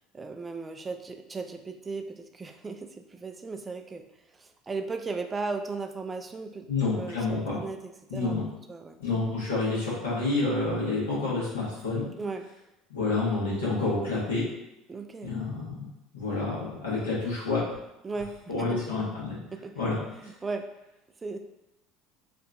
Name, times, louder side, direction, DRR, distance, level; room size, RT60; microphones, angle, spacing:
voice 1, 0.1-4.0 4.4-8.4 8.7-9.0 12.2-12.5 14.9-15.4 18.0-18.3 18.6-18.8 19.5-19.7 20.1-20.7 21.2-21.4, right 4 dB, 25° right, 5 dB, 0.3 m, -36 dB
voice 2, 6.7-7.6 8.1-8.4 9.0-12.1 12.9-14.5 15.2-15.7 16.1-17.6 18.5-19.4 19.7-20.3, left 3 dB, 80° left, -8 dB, 1.2 m, -28 dB
2.9 x 2.5 x 2.3 m, 0.90 s
hypercardioid pair, 70°, 0 cm